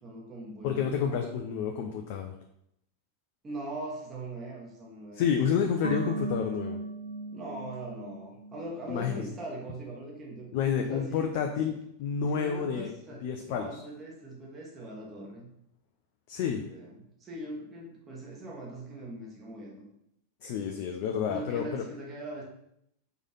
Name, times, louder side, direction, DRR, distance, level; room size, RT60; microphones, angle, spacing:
voice 1, 0.0-0.9 3.4-5.3 7.3-10.5 10.9-11.3 11.7-11.8 12.3-15.5 16.7-19.8 21.3-22.4, right 1 dB, 20° right, -3 dB, 1.5 m, -41 dB
voice 2, 0.6-2.3 5.1-6.8 8.9-9.2 10.5-12.9 13.2-13.7 16.3-16.6 20.4-21.8, left 7 dB, 45° left, 3 dB, 0.6 m, -29 dB
sound 1, 5.8-9.1 9.4-9.5, right 2 dB, 80° right, 0.8 m, -37 dB
4.9 x 3.9 x 5.6 m, 0.76 s
figure-of-eight pair, 90°, 0 cm